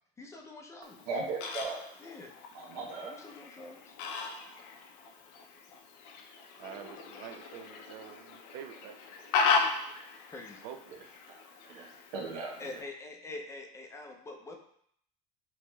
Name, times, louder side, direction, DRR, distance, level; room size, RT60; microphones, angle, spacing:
voice 1, 0.2-1.1 2.0-2.3 3.0-4.0 6.8-6.9 10.3-10.6 12.3-14.6, left 2 dB, 15° left, 2 dB, 0.5 m, -45 dB
Fowl, 0.8-12.8, left 5 dB, 85° left, 0.5 m, -36 dB
voice 2, 1.1-1.8 2.5-3.1 11.3-11.9 12.1-12.5, right 3 dB, 85° right, 0 dB, 0.8 m, -37 dB
voice 3, 6.6-9.3 10.6-11.0, right 9 dB, 65° right, 8 dB, 0.4 m, -47 dB
4.5 x 2.9 x 2.2 m, 0.67 s
cardioid pair, 130°, 19 cm